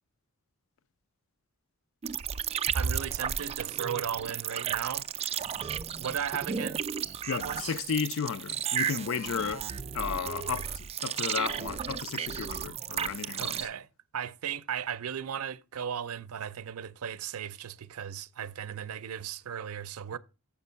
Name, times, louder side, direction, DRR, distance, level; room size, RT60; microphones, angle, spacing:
sound 1, 2.0-13.6, right 7 dB, 30° right, 0.3 m, -33 dB
voice 1, 2.7-5.1 6.0-6.8 7.4-7.8 13.4-13.9 14.1-20.2, right 8 dB, 85° right, 0.5 m, -36 dB
voice 2, 7.3-9.7 9.9-13.7, left 6 dB, 65° left, 0.4 m, -33 dB
7.2 x 5.2 x 5.6 m
head